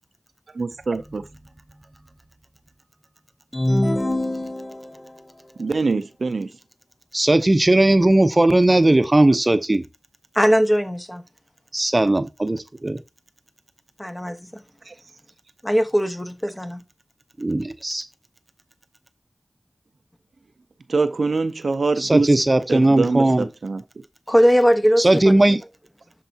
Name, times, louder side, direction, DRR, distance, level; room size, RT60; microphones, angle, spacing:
voice 1, 0.5-1.2 5.6-6.5 11.8-11.9 14.9-15.0 20.9-22.3 22.7-23.8, right 3 dB, 85° right, 0.5 m, -24 dB
sound 1, 3.5-5.1, left 1 dB, 35° left, 1.0 m, -24 dB
voice 2, 7.1-9.8 11.7-13.0 17.4-18.0 22.0-23.5 25.0-25.6, right 1 dB, 40° right, 0.7 m, -17 dB
voice 3, 10.3-11.2 14.0-14.6 15.6-16.8 24.3-25.1, equal, 15° left, 1.2 m, -19 dB
12.0 x 4.6 x 2.8 m
cardioid pair, 40°, 0 cm